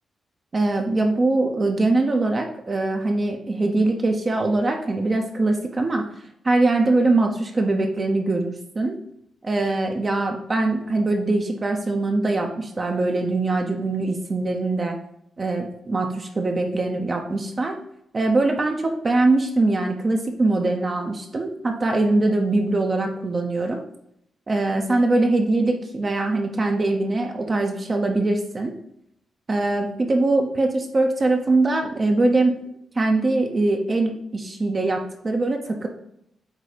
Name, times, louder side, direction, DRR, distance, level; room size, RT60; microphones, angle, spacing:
voice 1, 0.5-6.1 6.4-9.0 9.4-15.0 15.4-17.8 18.1-23.8 24.5-28.7 29.5-32.5 33.0-35.9, right 2 dB, 25° right, 3 dB, 0.7 m, -22 dB
8.2 x 2.7 x 5.0 m, 0.73 s
wide cardioid pair, 145°, 0 cm